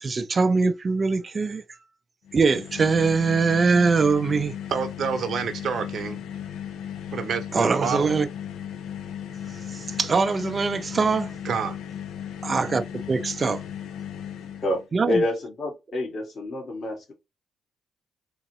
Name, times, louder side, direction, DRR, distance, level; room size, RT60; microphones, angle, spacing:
voice 1, 0.0-1.6 2.3-4.6 7.5-8.3 9.5-11.4 12.4-13.6 14.9-15.2, right 4 dB, 35° right, 0.5 m, -23 dB
sound 1, 2.3-14.9, left 9 dB, 80° left, 0.5 m, -36 dB
voice 2, 4.7-6.2 7.1-8.1 11.4-11.8, right 6 dB, 60° right, 0.8 m, -28 dB
voice 3, 14.5-17.1, left 1 dB, 50° left, 1.9 m, -28 dB
3.8 x 2.9 x 3.0 m
cardioid pair, 90°, 0 cm